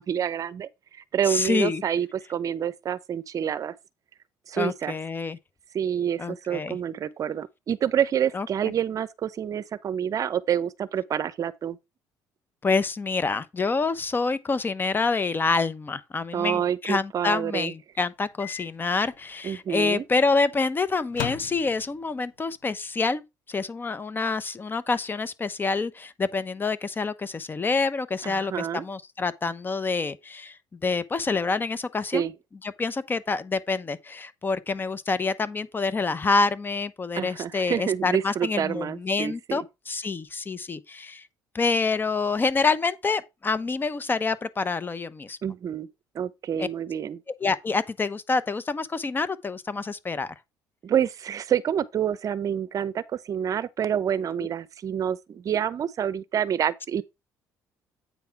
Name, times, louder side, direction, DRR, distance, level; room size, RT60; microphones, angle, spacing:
voice 1, 0.0-3.7 4.5-4.9 5.7-11.8 16.3-17.7 19.4-20.0 28.2-28.8 32.1-32.3 37.1-39.6 45.4-45.9 46.1-47.2 50.8-57.0, right 9 dB, 50° right, 0.7 m, -28 dB
voice 2, 1.3-1.8 4.6-5.4 6.2-6.8 8.3-8.7 12.6-30.6 30.8-32.3 32.6-41.2 41.5-45.4 46.6-46.7 47.4-50.3 54.4-54.5, left 4 dB, 30° left, 0.8 m, -27 dB
Microwave oven, 18.4-18.7 19.1-19.2 21.1-22.1, left 14 dB, 80° left, 0.5 m, -36 dB
8.4 x 3.6 x 5.7 m
supercardioid pair, 80°, 7 cm